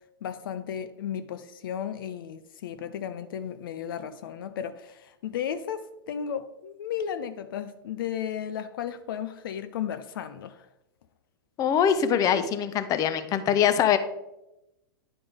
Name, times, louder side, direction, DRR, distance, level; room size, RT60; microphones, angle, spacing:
voice 1, 0.2-10.7, left 8 dB, 70° left, 0.5 m, -34 dB
voice 2, 11.6-14.0, left 8 dB, 30° left, 0.6 m, -23 dB
9.9 x 5.1 x 3.5 m
hypercardioid pair, 115°, 12 cm